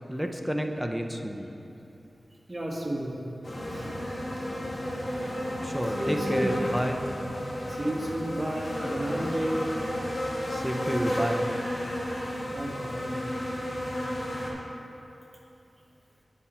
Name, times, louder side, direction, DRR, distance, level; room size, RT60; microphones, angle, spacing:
voice 1, 0.1-1.5 5.6-7.0 10.5-11.5, equal, ahead, 3 dB, 0.6 m, -30 dB
voice 2, 2.5-3.2 3.7-3.9 5.9-6.5 7.7-9.6 12.5-13.1, right 1 dB, 25° right, -3 dB, 1.4 m, -32 dB
sound 1, 3.4-14.5, equal, 40° left, 1.4 m, -32 dB
9.4 x 5.6 x 4.3 m, 2.9 s
wide cardioid pair, 65°, 0 cm